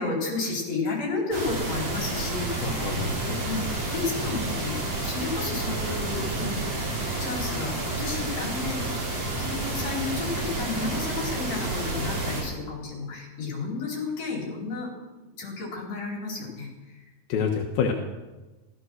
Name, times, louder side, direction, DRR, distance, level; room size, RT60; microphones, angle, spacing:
voice 1, 0.0-3.6 3.9-6.8 7.2-8.8 9.4-14.9 15.4-17.1, left 3 dB, 45° left, -1 dB, 5.3 m, -32 dB
sound 1, 1.3-12.4, right 2 dB, 45° right, 6.0 m, -30 dB
voice 2, 2.6-3.4 17.3-17.9, left 6 dB, 80° left, 2 dB, 3.1 m, -27 dB
14.5 x 14.5 x 6.4 m, 1.1 s
omnidirectional pair, 4.3 m